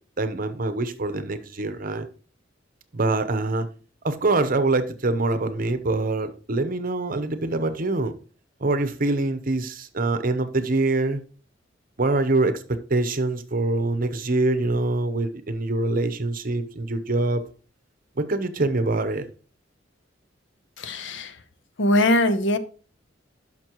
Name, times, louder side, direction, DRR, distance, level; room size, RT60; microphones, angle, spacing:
voice 1, 0.2-2.1 2.9-3.7 4.0-8.1 8.6-11.2 12.0-17.4 18.2-19.2, right 2 dB, 50° right, 0.8 m, -24 dB
voice 2, 20.8-21.3 21.8-22.6, left 1 dB, 70° left, 0.7 m, -21 dB
11.0 x 6.0 x 3.0 m
head